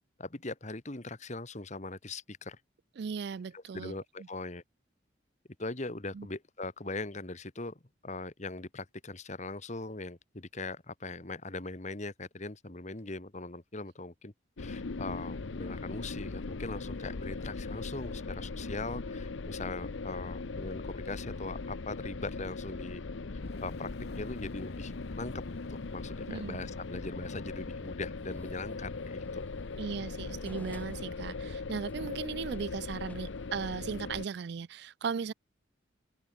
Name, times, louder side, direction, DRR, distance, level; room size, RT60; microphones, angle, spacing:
voice 1, 0.2-2.6 3.5-4.6 5.6-14.3 14.6-23.0 23.6-23.9 24.1-25.3 25.7-29.5, left 2 dB, 40° left, 1.7 m, -40 dB
voice 2, 3.0-4.0 6.1-6.3 26.3-26.7 29.8-35.3, right 6 dB, 60° right, 0.4 m, -37 dB
sound 1, 14.6-34.2, left 3 dB, 75° left, 0.8 m, -39 dB
Fire, 23.3-28.6, left 2 dB, 55° left, 1.3 m, -49 dB
sound 2, 28.2-33.5, equal, 10° left, 7.6 m, -57 dB
open air
head